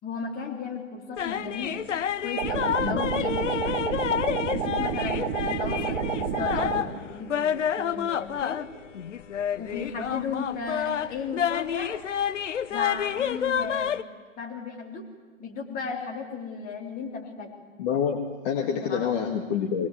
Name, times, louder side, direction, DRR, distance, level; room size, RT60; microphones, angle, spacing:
voice 1, 0.0-1.8 2.2-3.7 4.4-8.7 9.6-12.0 12.7-14.0 14.3-15.1 15.4-17.5 18.6-19.3, left 5 dB, 20° left, 0 dB, 3.8 m, -35 dB
sound 1, 1.2-14.0, left 9 dB, 65° left, 0.9 m, -29 dB
sound 2, 2.4-6.8, right 6 dB, 40° right, 3.6 m, -29 dB
voice 2, 17.8-19.9, left 7 dB, 40° left, 1 dB, 2.2 m, -27 dB
24.0 x 20.0 x 7.8 m, 1.4 s
figure-of-eight pair, 120°, 39 cm